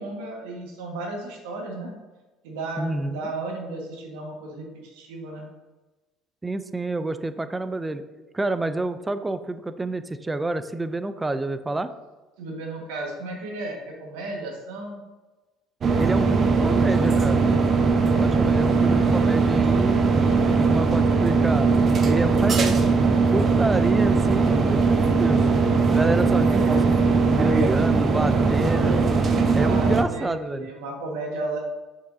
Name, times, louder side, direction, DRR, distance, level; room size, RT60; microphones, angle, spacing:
voice 1, 0.0-1.9 2.4-5.5 12.4-15.0 29.5-31.6, right 2 dB, 85° right, 1 dB, 1.4 m, -34 dB
voice 2, 2.8-3.2 6.4-8.0 8.3-11.9 16.0-17.5 17.8-20.0 20.6-21.7 22.0-22.8 23.1-25.5 25.9-27.0 27.3-29.0 29.5-30.7, right 2 dB, 15° right, 11 dB, 0.4 m, -28 dB
sound 1, 15.8-30.0, right 4 dB, 40° right, 0.7 m, -20 dB
6.7 x 5.4 x 2.6 m, 1.1 s
supercardioid pair, 95°, 0 cm